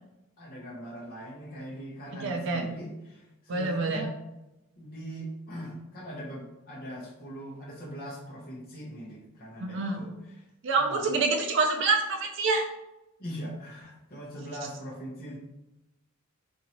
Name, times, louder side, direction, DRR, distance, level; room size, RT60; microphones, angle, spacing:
voice 1, 0.4-4.2 4.8-10.5 10.8-11.1 13.2-15.4, equal, 45° left, -4 dB, 0.8 m, -41 dB
voice 2, 2.2-2.7 3.5-4.1 9.6-10.0 10.6-12.6, right 3 dB, 55° right, 2 dB, 0.4 m, -26 dB
4.1 x 2.6 x 2.9 m, 0.95 s
head